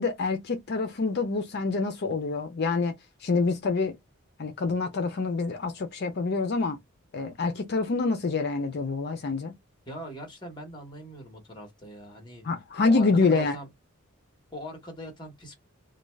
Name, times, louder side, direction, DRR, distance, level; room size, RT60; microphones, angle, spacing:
voice 1, 0.0-4.0 4.4-6.8 7.1-9.5 12.4-13.6, left 4 dB, 50° left, 0.5 m, -26 dB
voice 2, 9.9-12.5 12.8-13.7 14.5-15.6, equal, 20° left, 1.1 m, -41 dB
2.5 x 2.2 x 3.1 m
head